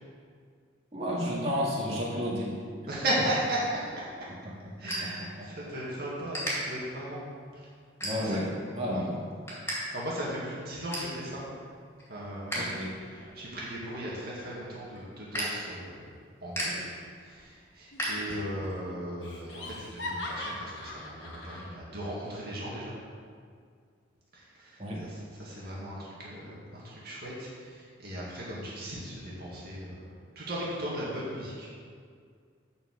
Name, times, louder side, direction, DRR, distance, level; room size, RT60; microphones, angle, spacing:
voice 1, 0.9-2.6 4.4-4.5 5.0-5.1 5.4-5.5 8.0-9.2 12.5-12.9 24.8-25.1, equal, 35° right, -5 dB, 2.1 m, -31 dB
voice 2, 2.9-4.0 4.8-7.3 7.5-7.7 8.2-8.4 9.9-11.4 12.1-12.8 13.1-16.0 16.4-16.9 17.2-23.0 24.3-30.1 30.4-31.7, right 1 dB, 55° right, -6 dB, 2.1 m, -36 dB
sound 1, 3.7-5.8 6.1-6.5 7.1-7.3 7.9-8.6 9.0-9.8 10.1-10.2 10.5-11.2 11.6-12.6 13.0-18.7, equal, 15° left, 2.8 m, -37 dB
Laughter, 17.9-18.5 18.7-18.8 19.2-21.7, left 2 dB, 70° left, 1.5 m, -40 dB
11.0 x 4.7 x 6.6 m, 2.1 s
head